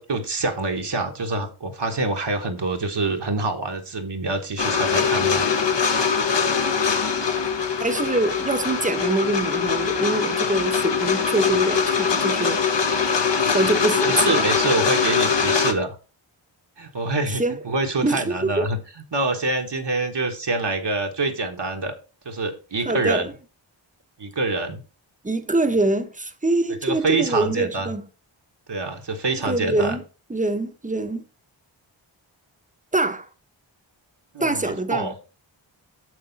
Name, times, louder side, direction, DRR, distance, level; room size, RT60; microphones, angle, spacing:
voice 1, 0.0-5.4 14.0-15.9 16.8-18.8 19.1-22.0 22.2-23.2 24.2-24.8 26.8-27.9 28.7-30.0 34.3-35.1, right 3 dB, 60° right, 1.4 m, -26 dB
sound 1, 4.6-15.7, left 6 dB, 60° left, 1.1 m, -22 dB
voice 2, 7.8-12.6 13.4-14.5 17.3-17.6 18.0-18.7 22.8-23.3 25.2-28.1 29.4-30.0 30.3-31.3 32.9-33.3 34.4-35.1, right 2 dB, 15° right, 0.9 m, -24 dB
6.6 x 6.4 x 4.0 m
wide cardioid pair, 55°, 48 cm